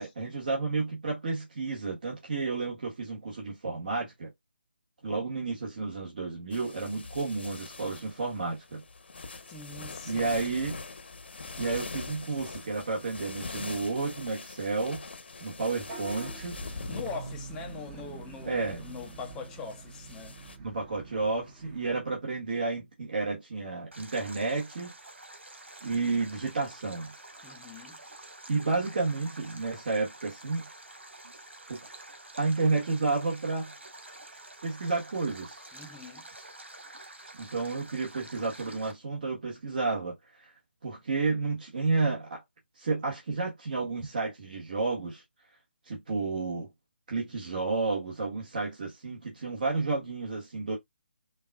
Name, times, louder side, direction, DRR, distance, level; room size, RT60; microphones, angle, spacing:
voice 1, 0.0-4.3 5.0-8.8 10.0-10.7 11.6-15.1 15.4-16.5 18.4-18.8 20.6-24.9 25.8-27.1 28.5-30.7 31.7-31.9 32.4-33.7 34.6-35.6 37.4-40.5 40.8-42.4 42.8-45.2 45.9-46.7 47.1-50.8, right 3 dB, 50° right, 1.7 m, -31 dB
sound 1, 6.5-20.6, left 4 dB, 65° left, 1.0 m, -43 dB
voice 2, 9.5-10.7 16.9-20.3 27.4-28.0 35.7-36.3, left 5 dB, 10° left, 0.7 m, -42 dB
Vehicle horn car horn honking / Bus, 15.8-21.9, right 4 dB, 25° right, 1.1 m, -45 dB
Stream, 23.9-38.9, right 2 dB, 85° right, 1.6 m, -48 dB
5.2 x 2.6 x 2.3 m
figure-of-eight pair, 160°, 6 cm